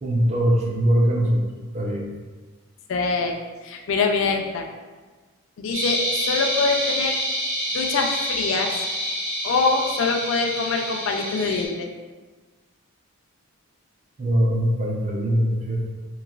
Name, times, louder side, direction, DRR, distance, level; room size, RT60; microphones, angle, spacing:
voice 1, 0.0-1.4 1.7-2.1 14.2-15.9, equal, 30° right, -2 dB, 0.4 m, -21 dB
voice 2, 2.9-4.6 5.6-7.2 7.7-8.7 9.4-11.9, left 4 dB, 65° left, 2 dB, 0.3 m, -24 dB
sound 1, 5.7-11.7, equal, 60° right, 1.2 m, -27 dB
3.1 x 2.5 x 2.3 m, 1.3 s
head